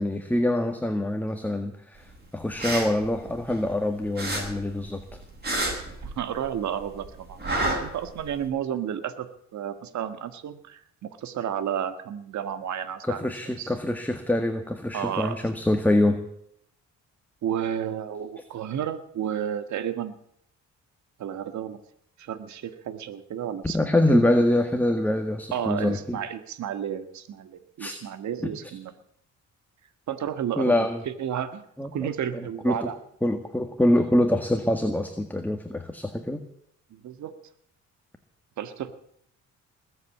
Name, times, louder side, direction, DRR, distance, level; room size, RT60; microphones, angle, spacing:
voice 1, 0.0-5.2 13.1-16.2 23.7-26.2 27.8-27.9 28.4-28.5 30.6-31.0 31.8-32.1 32.6-32.8 33.2-36.4, left 1 dB, 5° left, 5 dB, 1.8 m, -25 dB
sound 1, 2.4-3.8 4.2-6.6 6.8-8.4, right 1 dB, 30° right, 7.8 m, -30 dB
voice 2, 6.0-9.3 9.5-13.2 13.6-13.7 14.9-15.4 17.4-20.1 21.2-21.8 22.2-24.2 25.5-28.9 30.1-30.7 31.0-31.6 31.9-33.0 36.9-37.4 38.6-38.9, right 9 dB, 70° right, 10 dB, 1.6 m, -32 dB
20.5 x 8.2 x 8.5 m, 0.71 s
cardioid pair, 90°, 30 cm